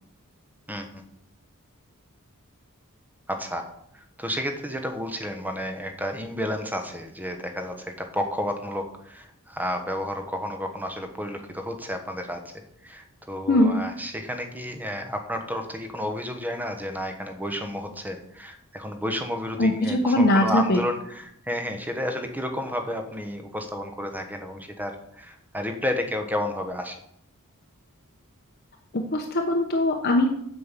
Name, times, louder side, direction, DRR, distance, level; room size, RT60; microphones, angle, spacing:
voice 1, 0.7-1.0 3.3-3.6 3.9-12.4 12.8-27.0, equal, 10° right, 5 dB, 1.1 m, -31 dB
voice 2, 13.5-13.8 19.6-20.8 28.9-30.3, left 1 dB, 45° left, 1 dB, 0.9 m, -21 dB
7.7 x 5.3 x 7.5 m, 0.72 s
head